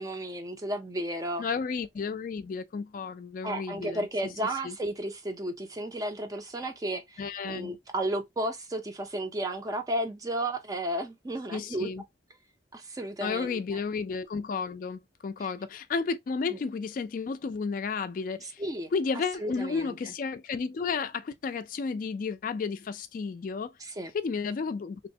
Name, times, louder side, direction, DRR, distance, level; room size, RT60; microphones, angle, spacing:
voice 1, 0.0-1.4 3.4-11.9 12.7-13.8 15.4-15.5 16.5-16.6 18.4-18.9 19.4-20.1 23.8-24.1, right 1 dB, 20° right, 0.4 m, -33 dB
voice 2, 1.4-4.1 4.6-4.8 7.2-7.7 11.5-12.0 13.2-18.6 18.9-23.7 24.1-25.1, left 5 dB, 45° left, 0.3 m, -32 dB
2.9 x 2.1 x 2.6 m
head